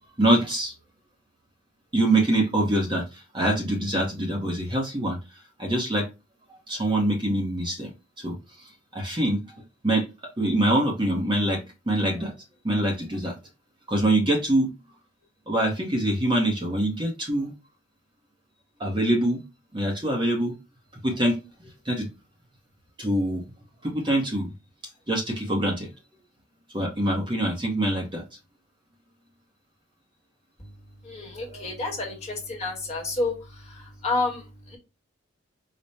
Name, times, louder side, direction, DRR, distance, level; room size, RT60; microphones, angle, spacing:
voice 1, 0.2-0.7 1.9-5.2 5.6-6.1 6.7-7.9 8.2-8.3 8.9-9.4 9.8-10.0 10.4-11.6 11.9-12.3 12.6-13.3 13.9-14.7 15.5-17.5 18.8-19.4 19.7-20.5 21.0-21.4 21.8-22.1 23.0-23.4 23.8-24.5 25.1-25.9 26.7-28.2, right 1 dB, 25° right, 0 dB, 0.8 m, -24 dB
voice 2, 30.6-34.8, left 3 dB, 30° left, 0 dB, 1.1 m, -30 dB
4.1 x 2.1 x 3.2 m, 0.27 s
head